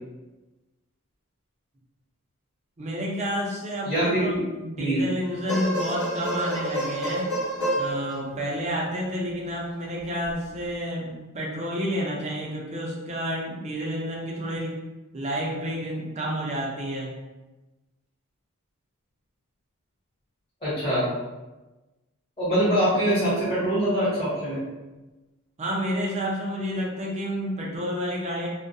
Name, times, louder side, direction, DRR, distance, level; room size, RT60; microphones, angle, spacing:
voice 1, 2.8-7.3 7.8-14.8 15.1-17.1 25.6-28.5, equal, 30° right, -3 dB, 0.5 m, -30 dB
voice 2, 3.8-4.3 4.8-5.0 20.6-21.1 22.4-24.6, right 1 dB, 25° left, -13 dB, 1.0 m, -23 dB
sound 1, 5.2-8.7 10.2-10.3, right 1 dB, 60° left, 1.0 m, -29 dB
2.3 x 2.1 x 2.6 m, 1.1 s
head